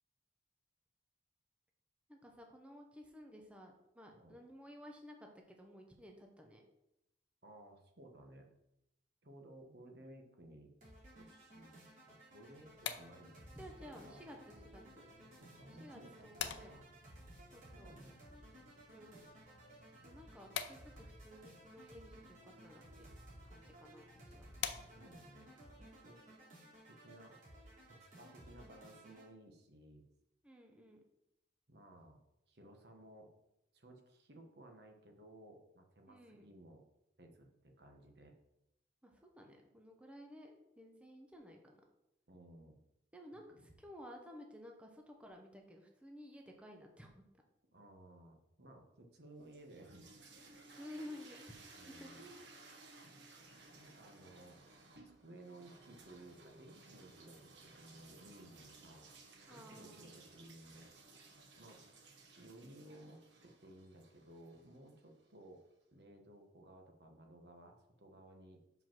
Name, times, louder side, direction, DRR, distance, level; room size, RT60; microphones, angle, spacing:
voice 1, 2.1-6.6 13.6-15.1 15.8-16.7 17.5-17.9 18.9-19.2 20.0-23.1 23.4-24.5 30.4-31.0 36.1-36.5 39.0-41.8 43.1-47.1 50.8-51.4 51.9-52.4 59.5-60.1, equal, 5° right, 1 dB, 0.8 m, -54 dB
voice 2, 7.4-8.5 9.2-10.7 11.2-14.2 15.4-16.8 17.5-18.2 24.7-25.5 25.8-26.2 26.9-27.4 27.9-30.1 31.7-32.2 32.5-33.3 33.7-36.8 37.2-38.3 42.3-42.8 43.3-43.7 47.7-50.1 51.7-52.3 53.7-54.6 55.2-59.1 59.5-60.9 61.6-61.8 62.4-65.6 65.9-68.6, right 1 dB, 65° right, 3 dB, 1.2 m, -58 dB
sound 1, 10.8-29.3, right 1 dB, 45° right, 2.9 m, -58 dB
sound 2, 12.5-25.3, left 8 dB, 80° left, 0.6 m, -50 dB
sound 3, 49.3-65.3, right 3 dB, 90° right, 1.2 m, -59 dB
5.6 x 5.1 x 5.9 m, 0.85 s
head